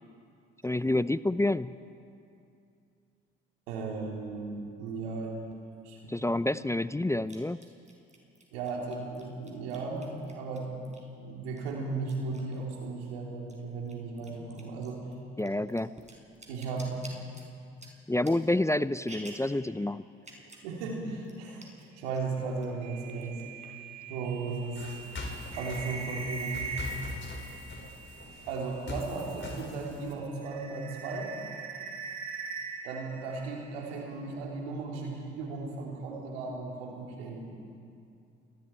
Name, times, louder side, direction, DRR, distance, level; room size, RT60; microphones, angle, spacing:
voice 1, 0.6-1.7 6.1-7.6 15.4-15.9 18.1-20.0, left 1 dB, 10° left, 15 dB, 0.5 m, -28 dB
voice 2, 3.7-5.4 5.8-6.3 8.5-15.0 16.5-17.1 20.6-23.4 24.1-24.8 25.5-26.8 28.5-31.3 32.8-37.5, right 3 dB, 90° right, -1 dB, 3.1 m, -36 dB
sound 1, 5.5-5.6 7.3-11.2 11.6-13.1 13.4-19.5 20.2-20.7 21.0-21.1 21.2-21.8 22.1-22.7 23.0-23.9, right 2 dB, 25° right, 5.0 m, -51 dB
sound 2, 22.8-29.7 30.0-34.0, right 4 dB, 60° right, 2.8 m, -42 dB
sound 3, 24.7-30.1, left 2 dB, 40° left, 4.3 m, -42 dB
28.0 x 21.0 x 4.5 m, 2.5 s
hypercardioid pair, 50°, 30 cm